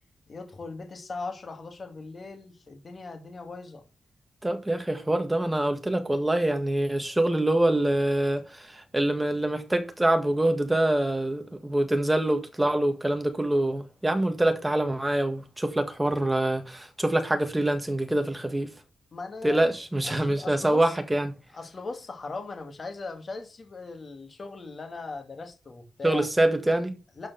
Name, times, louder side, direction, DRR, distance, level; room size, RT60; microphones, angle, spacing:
voice 1, 0.3-3.8 19.1-19.8 20.0-20.9 21.5-26.3 27.2-27.3, left 3 dB, 35° left, 2.3 m, -39 dB
voice 2, 4.4-18.7 19.4-21.3 26.0-27.0, right 1 dB, 10° right, 1.7 m, -25 dB
12.0 x 4.9 x 5.9 m
wide cardioid pair, 140°, 0 cm